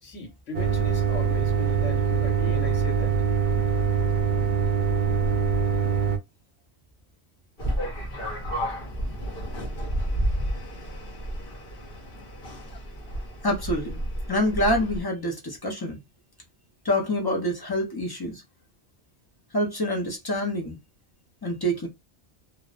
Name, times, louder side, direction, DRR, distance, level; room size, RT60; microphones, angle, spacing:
voice 1, 0.0-3.2, left 3 dB, 85° left, 1.3 m, -38 dB
sound 1, 0.5-6.2, right 7 dB, 60° right, 0.5 m, -23 dB
sound 2, 7.6-15.0, equal, 55° left, 0.9 m, -31 dB
voice 2, 13.4-14.0 14.3-16.0 16.8-18.4 19.5-20.8 21.4-21.9, equal, 35° left, 0.3 m, -26 dB
2.6 x 2.0 x 2.4 m
omnidirectional pair, 1.2 m